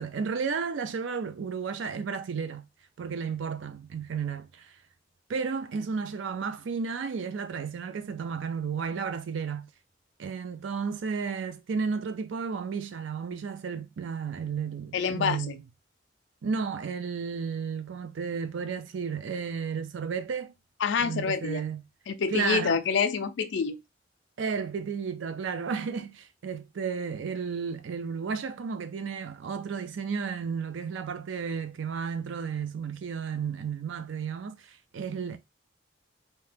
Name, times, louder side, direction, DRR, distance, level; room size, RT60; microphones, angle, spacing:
voice 1, 0.0-2.7 3.0-4.7 5.3-9.7 10.2-15.6 16.4-20.5 21.0-21.8 22.3-22.8 24.4-35.4, right 6 dB, 85° right, 0.4 m, -33 dB
voice 2, 14.9-15.6 20.8-21.6 22.1-23.8, left 6 dB, 75° left, 0.4 m, -27 dB
2.7 x 2.2 x 3.2 m
head